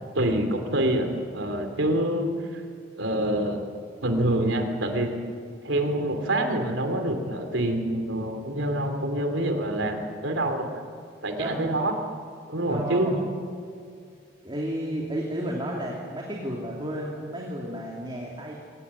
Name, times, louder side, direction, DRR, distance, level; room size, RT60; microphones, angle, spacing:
voice 1, 0.1-2.6 3.0-3.6 4.0-5.1 5.6-10.8 11.2-11.9 12.5-13.3, right 1 dB, 75° right, 5 dB, 3.1 m, -26 dB
voice 2, 12.7-13.2 14.4-18.5, right 1 dB, 25° right, -2 dB, 2.8 m, -32 dB
22.5 x 19.0 x 9.8 m, 2.2 s
head